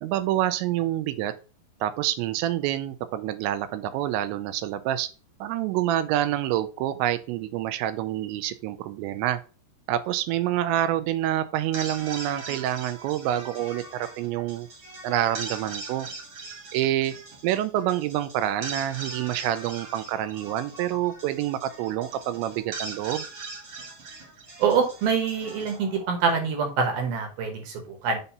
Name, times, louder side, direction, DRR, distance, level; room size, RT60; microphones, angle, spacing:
voice 1, 0.0-1.3 1.8-5.1 5.4-9.4 9.9-14.7 15.0-16.1 16.7-17.1 17.4-23.3, right 12 dB, 85° right, 11 dB, 2.9 m, -27 dB
sound 1, 11.5-26.8, right 3 dB, 50° right, 1.7 m, -40 dB
voice 2, 24.6-28.2, right 5 dB, 70° right, 3 dB, 2.5 m, -25 dB
7.1 x 2.7 x 5.3 m, 0.35 s
omnidirectional pair, 5.1 m